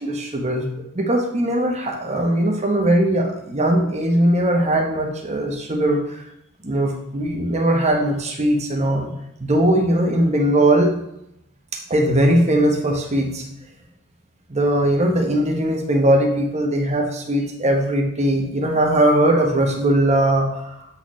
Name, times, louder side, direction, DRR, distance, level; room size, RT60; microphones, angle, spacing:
voice 1, 0.0-0.7 0.9-6.3 6.6-9.1 9.4-11.0 11.7-13.5 14.5-20.9, right 1 dB, 30° right, 1 dB, 0.9 m, -20 dB
7.4 x 4.2 x 3.1 m, 0.80 s
head